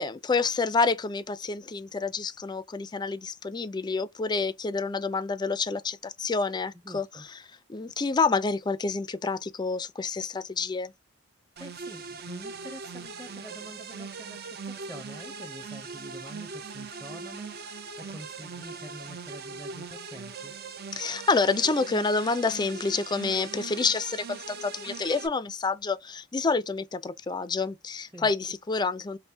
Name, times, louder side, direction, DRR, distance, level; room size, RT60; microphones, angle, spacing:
voice 1, 0.0-7.1 7.7-10.9 20.9-29.2, left 4 dB, 20° left, 0.4 m, -28 dB
voice 2, 6.8-7.3 11.6-20.5 28.1-28.3, equal, 10° right, 0.7 m, -46 dB
sound 1, 11.6-25.3, right 4 dB, 50° right, 0.6 m, -40 dB
5.3 x 2.1 x 2.7 m
head